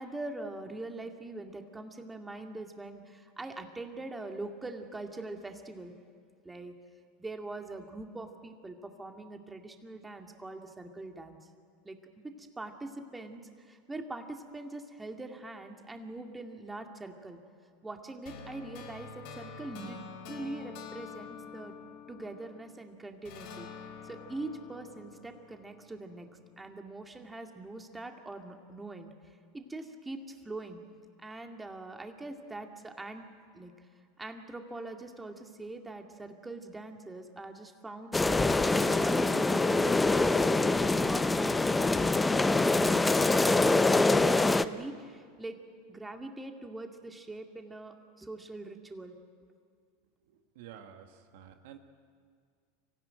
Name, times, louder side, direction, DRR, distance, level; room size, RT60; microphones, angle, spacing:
voice 1, 0.0-5.9 6.4-6.7 7.2-11.4 11.8-12.0 12.2-17.4 17.8-20.0 20.3-21.7 22.1-23.7 24.0-26.3 26.6-30.8 31.2-33.3 33.5-33.7 34.2-45.6 45.9-49.2, right 2 dB, 10° right, 4 dB, 2.2 m, -43 dB
sound 1, 18.3-22.8 23.3-26.3, left 6 dB, 60° left, 4.5 m, -47 dB
sound 2, 38.1-44.6, left 2 dB, 10° left, 0.7 m, -25 dB
voice 2, 50.5-51.8, right 9 dB, 65° right, 6 dB, 1.6 m, -50 dB
25.0 x 16.0 x 9.0 m, 2.1 s
hypercardioid pair, 95°, 0 cm